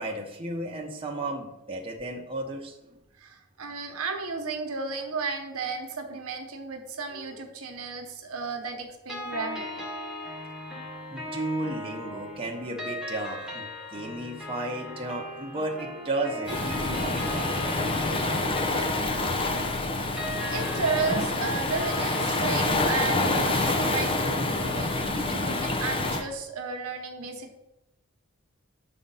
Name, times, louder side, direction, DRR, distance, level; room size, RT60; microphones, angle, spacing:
voice 1, 0.0-3.0 11.1-17.9, right 2 dB, 25° right, 0 dB, 0.9 m, -34 dB
voice 2, 3.2-9.9 20.5-27.6, right 4 dB, 70° right, 4 dB, 1.1 m, -33 dB
sound 1, 9.1-23.9, left 1 dB, 5° right, 1.3 m, -38 dB
Waves surf, 16.5-26.2, left 2 dB, 25° left, 0.6 m, -27 dB
7.6 x 3.9 x 5.6 m, 0.92 s
head